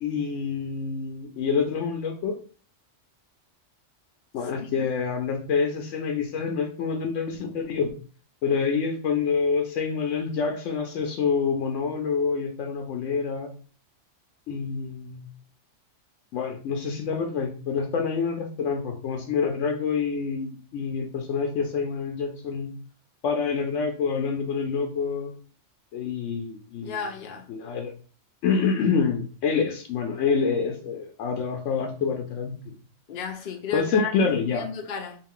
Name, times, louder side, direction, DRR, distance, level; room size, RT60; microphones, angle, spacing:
voice 1, 0.0-2.3 4.3-7.9 8.4-13.5 14.5-15.3 16.3-22.7 23.2-25.3 25.9-27.0 27.5-27.9 28.4-32.7 33.7-34.7, left 5 dB, 85° left, 0.9 m, -27 dB
voice 2, 26.8-27.5 33.1-35.2, left 6 dB, 60° left, 0.6 m, -33 dB
3.7 x 2.4 x 3.7 m
omnidirectional pair, 1.2 m